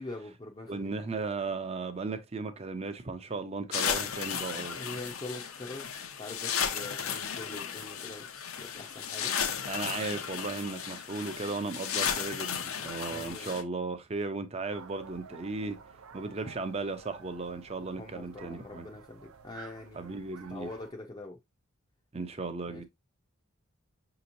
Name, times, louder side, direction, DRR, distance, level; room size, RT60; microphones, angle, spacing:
voice 1, 0.0-0.9 4.7-5.9 6.2-9.4 12.9-13.5 18.0-20.1 20.5-21.4 22.7-22.8, left 2 dB, 25° left, 0.5 m, -44 dB
voice 2, 0.7-4.8 9.7-15.8 16.1-18.9 19.9-20.7 22.1-22.8, right 3 dB, 30° right, 0.5 m, -36 dB
sound 1, 3.7-13.6, left 7 dB, 80° left, 0.7 m, -34 dB
sled dogs distant howling, 14.7-20.9, right 6 dB, 75° right, 0.5 m, -52 dB
6.0 x 2.9 x 2.6 m
head